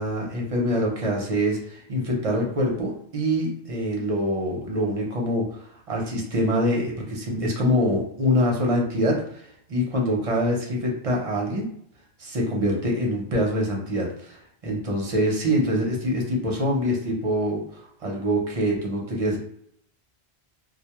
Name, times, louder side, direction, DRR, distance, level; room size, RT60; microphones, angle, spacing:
voice 1, 0.0-11.6 12.2-19.4, equal, 40° right, -1 dB, 0.6 m, -25 dB
2.2 x 2.1 x 2.9 m, 0.67 s
omnidirectional pair, 1.1 m